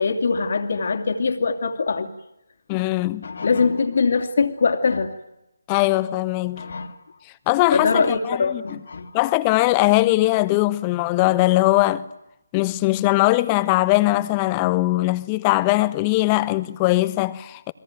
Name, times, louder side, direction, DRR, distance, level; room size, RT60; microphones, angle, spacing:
voice 1, 0.0-2.1 3.2-5.1 6.6-6.9 7.7-9.1, left 4 dB, 55° left, 2.7 m, -22 dB
voice 2, 2.7-3.3 5.7-6.6 7.5-8.8 9.1-12.0 12.5-17.7, left 19 dB, 20° left, 1.2 m, -20 dB
30.0 x 21.5 x 9.1 m
figure-of-eight pair, 150°, 0 cm